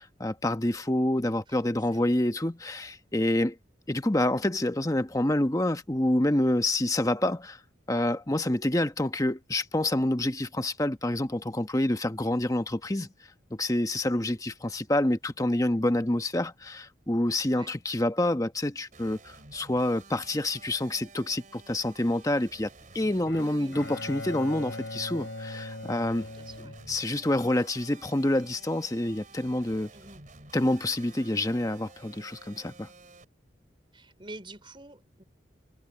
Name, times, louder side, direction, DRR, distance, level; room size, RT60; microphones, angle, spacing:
voice 1, 0.0-3.6 3.9-7.6 7.9-13.1 13.5-22.7 22.9-26.3 26.9-29.9 30.5-32.9, left 1 dB, 20° left, 1.0 m, -27 dB
sound 1, 18.9-33.2, right 3 dB, 45° right, 3.7 m, -52 dB
Bowed string instrument, 23.3-27.5, left 2 dB, 80° left, 5.6 m, -40 dB
voice 2, 23.4-23.8 26.3-26.8 29.9-30.3 33.9-35.2, right 2 dB, 25° right, 4.0 m, -47 dB
head